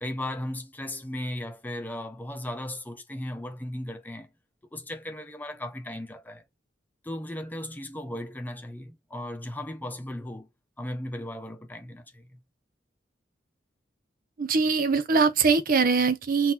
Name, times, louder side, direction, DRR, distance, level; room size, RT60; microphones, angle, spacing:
voice 1, 0.0-4.3 4.7-6.4 7.0-10.5 10.8-12.4, left 1 dB, 10° left, 0.8 m, -36 dB
voice 2, 14.4-16.5, right 4 dB, 50° right, 0.6 m, -22 dB
4.0 x 2.6 x 4.3 m
head